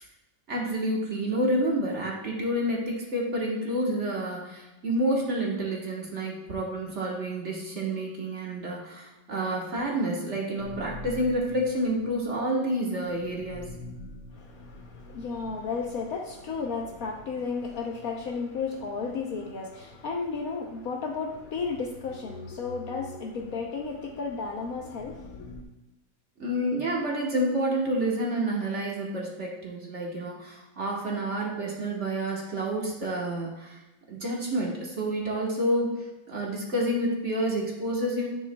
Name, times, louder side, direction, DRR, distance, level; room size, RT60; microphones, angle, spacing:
voice 1, 0.5-13.7 26.4-33.8 34.1-38.3, right 1 dB, 45° right, -2 dB, 1.3 m, -29 dB
sound 1, 10.6-25.6, left 1 dB, 85° left, 1.7 m, -47 dB
voice 2, 14.3-25.6, left 4 dB, 65° left, 1 dB, 1.0 m, -33 dB
9.8 x 6.1 x 2.2 m, 1.0 s
omnidirectional pair, 1.9 m